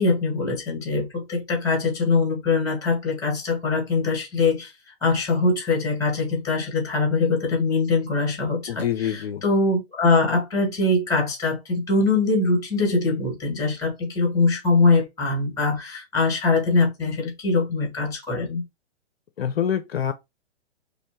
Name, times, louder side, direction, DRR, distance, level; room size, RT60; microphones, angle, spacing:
voice 1, 0.0-4.7 5.0-8.8 9.4-18.6, left 3 dB, 10° left, 2.2 m, -22 dB
voice 2, 8.7-9.4 19.4-20.1, left 9 dB, 60° left, 0.6 m, -25 dB
4.2 x 3.2 x 3.0 m
figure-of-eight pair, 120°, 35 cm